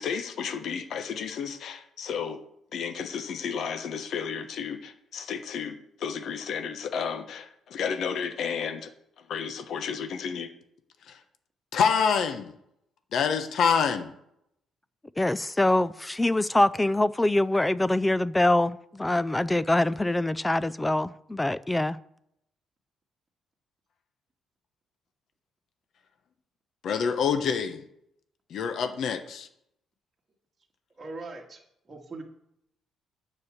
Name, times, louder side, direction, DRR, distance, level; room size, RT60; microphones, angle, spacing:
voice 1, 0.0-2.4 2.7-8.9 9.3-10.5 11.0-11.2 11.7-12.5 13.1-14.1 26.8-27.8 28.5-29.5, left 6 dB, 50° left, 1.0 m, -29 dB
voice 2, 15.2-22.0, left 1 dB, 10° left, 0.4 m, -24 dB
voice 3, 30.9-31.6 31.9-32.2, right 3 dB, 20° right, 1.8 m, -40 dB
9.6 x 6.5 x 8.6 m
cardioid pair, 170°, 0 cm